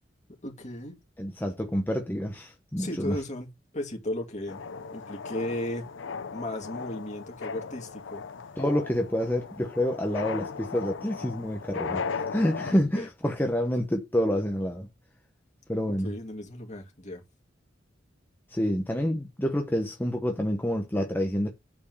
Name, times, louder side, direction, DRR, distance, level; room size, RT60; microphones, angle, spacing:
voice 1, 0.4-1.0 2.8-3.5 3.7-4.6 4.9-5.9 6.3-8.2 12.7-13.1 15.9-17.2, left 1 dB, 40° left, 2.5 m, -35 dB
voice 2, 1.2-3.2 8.6-12.0 12.3-14.9 15.7-16.1 18.5-21.5, equal, 10° left, 0.8 m, -28 dB
sound 1, 4.5-12.7, left 5 dB, 75° left, 0.6 m, -37 dB
8.6 x 4.5 x 5.4 m
head